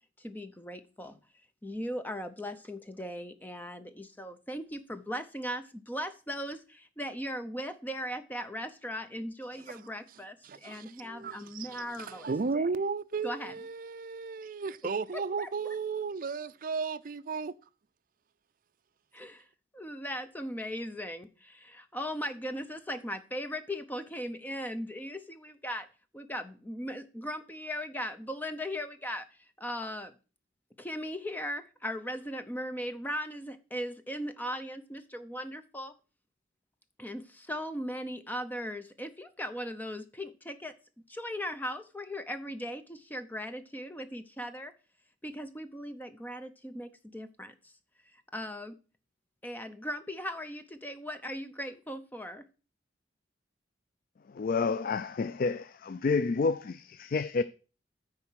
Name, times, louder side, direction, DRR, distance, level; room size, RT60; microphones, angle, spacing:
voice 1, 0.2-1.2 1.6-12.7 13.2-13.5 15.1-15.5 19.1-19.5 19.7-25.9 26.1-29.3 29.6-30.1 30.8-35.9 37.0-40.7 41.1-44.7 45.2-47.7 48.3-48.8 49.4-52.4, equal, 10° left, 0.7 m, -38 dB
voice 2, 10.4-17.5, right 4 dB, 45° right, 0.4 m, -34 dB
voice 3, 54.3-57.4, left 4 dB, 50° left, 0.3 m, -29 dB
9.5 x 4.5 x 6.2 m
head